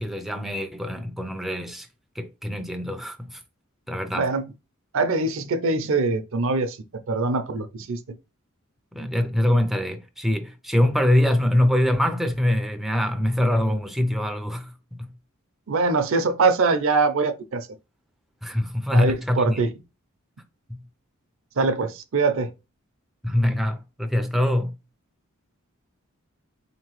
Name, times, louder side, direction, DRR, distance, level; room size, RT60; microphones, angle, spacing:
voice 1, 0.0-1.9 2.2-3.4 3.9-4.3 8.9-15.1 18.4-19.6 20.7-20.8 23.2-24.8, left 1 dB, ahead, 0.4 m, -24 dB
voice 2, 4.9-6.8 7.1-8.0 15.7-17.7 18.9-19.7 21.6-22.5, right 3 dB, 65° right, 0.6 m, -23 dB
4.0 x 2.9 x 3.0 m
head